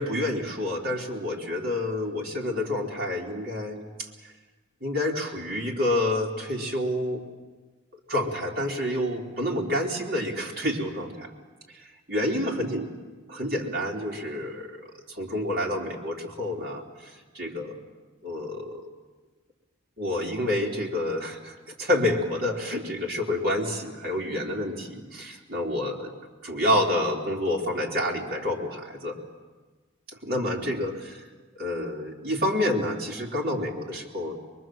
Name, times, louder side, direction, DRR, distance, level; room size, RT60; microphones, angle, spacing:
voice 1, 0.0-4.1 4.8-7.2 8.1-11.3 12.1-12.9 13.3-14.7 15.1-17.7 18.2-18.9 20.0-26.1 26.4-29.2 30.1-31.3 31.6-34.3, left 1 dB, 50° right, -2 dB, 3.6 m, -28 dB
23.5 x 23.0 x 7.7 m, 1.3 s
head